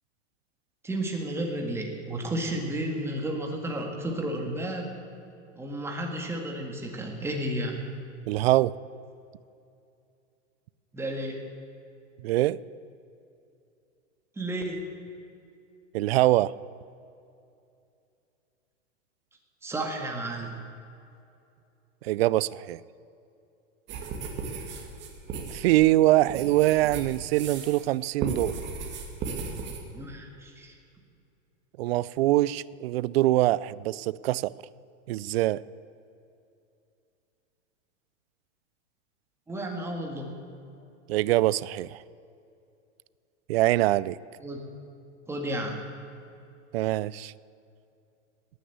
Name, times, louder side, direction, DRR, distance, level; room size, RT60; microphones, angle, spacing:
voice 1, 0.8-4.9 5.6-7.9 10.9-11.4 14.4-14.8 19.6-20.5 29.9-30.7 39.5-40.4 44.4-44.6 45.3-45.8, right 1 dB, 5° right, 1 dB, 1.8 m, -32 dB
voice 2, 8.3-8.7 12.2-12.6 15.9-16.5 22.0-22.8 25.5-28.5 31.8-34.5 35.1-35.6 41.1-42.0 43.5-44.2 46.7-47.3, right 16 dB, 55° right, 21 dB, 0.5 m, -23 dB
sound 1, 23.9-27.9 28.2-29.8, right 4 dB, 30° right, 2.1 m, -36 dB
18.0 x 9.6 x 8.0 m, 2.6 s
hypercardioid pair, 145°, 37 cm